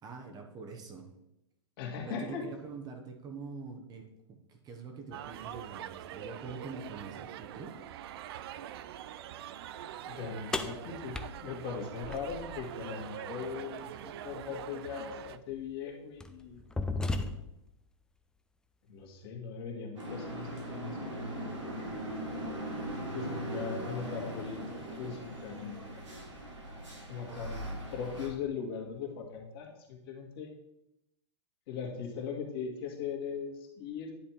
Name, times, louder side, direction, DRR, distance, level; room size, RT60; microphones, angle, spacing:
voice 1, 0.0-1.1 2.1-7.8, right 4 dB, 25° right, 3 dB, 1.0 m, -45 dB
voice 2, 1.8-2.4 10.1-17.3 18.9-21.9 23.1-24.6 25.0-25.9 27.1-30.5 31.7-34.1, left 6 dB, 55° left, 1 dB, 1.9 m, -40 dB
sound 1, 5.1-15.4, right 11 dB, 60° right, 0.4 m, -44 dB
sound 2, 10.5-12.7 14.6-14.7 15.5-15.7 16.2-17.7, left 2 dB, 5° left, 0.4 m, -35 dB
sound 3, 20.0-28.3, right 1 dB, 90° right, 2.5 m, -40 dB
10.0 x 3.4 x 4.4 m, 0.84 s
hypercardioid pair, 120°, 15 cm